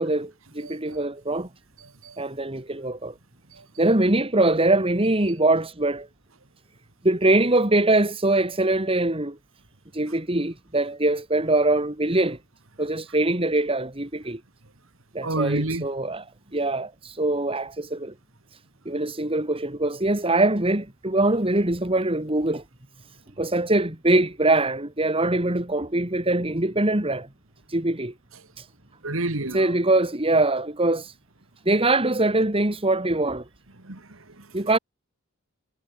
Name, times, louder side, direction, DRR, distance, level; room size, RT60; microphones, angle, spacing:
voice 1, 0.0-1.5 2.2-3.1 3.8-6.1 7.0-9.4 9.9-12.4 12.8-14.4 15.1-16.3 16.5-18.1 18.9-22.6 23.4-27.3 27.7-28.1 28.6-28.7 29.5-31.1 31.7-33.4 34.5-34.8, right 2 dB, 25° right, 2.4 m, -23 dB
voice 2, 0.6-1.0 2.0-2.2 3.5-3.6 15.2-15.9 29.0-29.7 33.8-34.5, right 2 dB, 70° right, 2.3 m, -29 dB
head